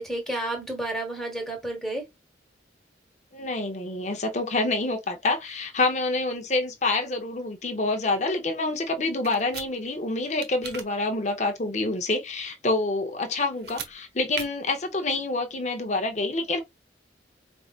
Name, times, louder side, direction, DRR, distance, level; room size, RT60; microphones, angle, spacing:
voice 1, 0.0-2.0, right 1 dB, ahead, 1.2 m, -31 dB
voice 2, 3.3-16.6, left 2 dB, 40° left, 0.8 m, -27 dB
sound 1, 9.2-9.7 10.4-10.9 13.6-13.9 14.3-14.5, right 6 dB, 55° right, 0.9 m, -36 dB
4.8 x 2.6 x 2.4 m
head